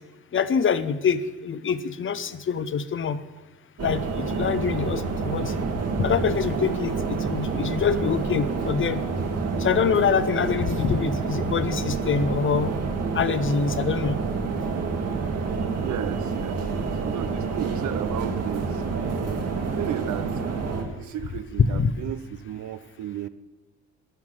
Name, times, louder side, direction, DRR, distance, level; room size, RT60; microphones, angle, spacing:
voice 1, 0.3-3.2 3.8-5.5 6.0-9.0 9.6-12.7 13.1-14.2 21.6-21.9, left 6 dB, 40° left, 14 dB, 0.8 m, -25 dB
sound 1, 3.8-20.8, right 4 dB, 55° right, 1.8 m, -28 dB
voice 2, 15.8-19.4 19.7-20.3 20.9-23.3, right 12 dB, 70° right, 13 dB, 0.7 m, -34 dB
12.5 x 6.0 x 9.0 m, 1.1 s
cardioid pair, 90°, 30 cm